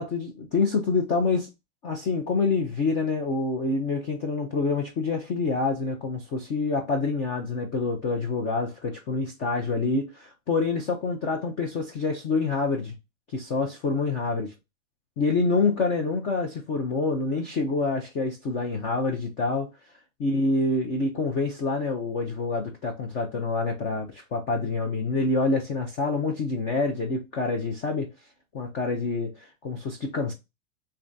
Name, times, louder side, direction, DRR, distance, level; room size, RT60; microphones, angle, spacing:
voice 1, 0.0-1.5 1.8-12.9 13.3-14.5 15.2-19.7 20.2-28.1 28.5-30.3, left 3 dB, 20° left, 0.3 m, -27 dB
3.4 x 3.2 x 2.5 m
hypercardioid pair, 125°, 42 cm